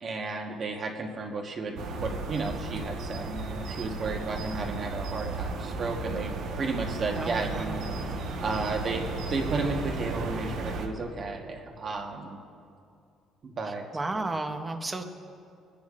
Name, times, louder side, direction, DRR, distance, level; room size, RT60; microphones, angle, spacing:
voice 1, 0.0-7.9 8.4-9.0 9.3-12.4 13.4-13.8, right 3 dB, 35° right, 2 dB, 1.2 m, -33 dB
sound 1, 1.8-10.9, right 3 dB, 70° right, 1.1 m, -34 dB
voice 2, 7.2-7.7 13.9-15.0, right 2 dB, 15° right, 6 dB, 0.7 m, -32 dB
25.0 x 10.5 x 2.5 m, 2.5 s
cardioid pair, 150°, 0 cm